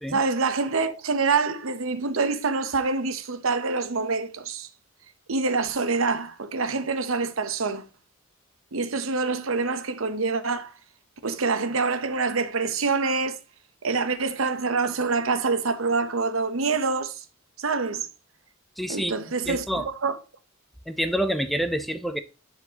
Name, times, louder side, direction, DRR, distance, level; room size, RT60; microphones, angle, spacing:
voice 1, 0.1-4.7 5.3-7.8 8.7-10.7 11.2-13.4 13.8-17.2 17.6-18.1 18.9-20.2, right 4 dB, 75° right, 0.9 m, -26 dB
voice 2, 18.8-19.1 19.5-19.9 20.9-22.2, equal, ahead, 0.4 m, -27 dB
10.5 x 4.5 x 2.8 m
head